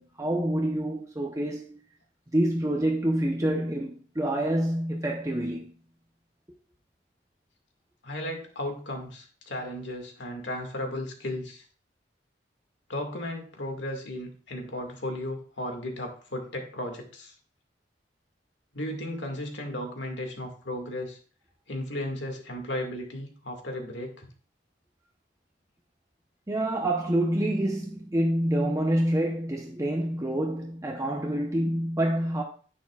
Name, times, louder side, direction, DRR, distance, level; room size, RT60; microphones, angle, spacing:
voice 1, 0.0-1.8 2.3-5.7 26.5-32.4, right 1 dB, 20° right, 0.9 m, -27 dB
voice 2, 8.0-11.6 12.9-17.3 18.7-21.2 21.7-24.3, left 1 dB, 75° left, 2.1 m, -35 dB
10.5 x 9.3 x 2.4 m
head